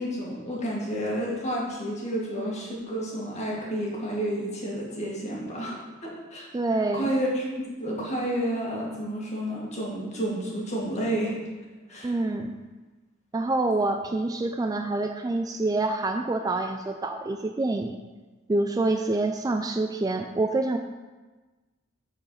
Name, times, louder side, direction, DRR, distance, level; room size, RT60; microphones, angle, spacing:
voice 1, 0.0-5.7 6.0-6.5 6.9-11.3 11.9-12.1, right 1 dB, 35° left, -4 dB, 2.0 m, -30 dB
voice 2, 6.5-7.1 12.0-12.6 13.3-17.9 18.5-20.8, right 2 dB, 20° right, 5 dB, 0.3 m, -26 dB
7.9 x 4.6 x 5.7 m, 1.3 s
head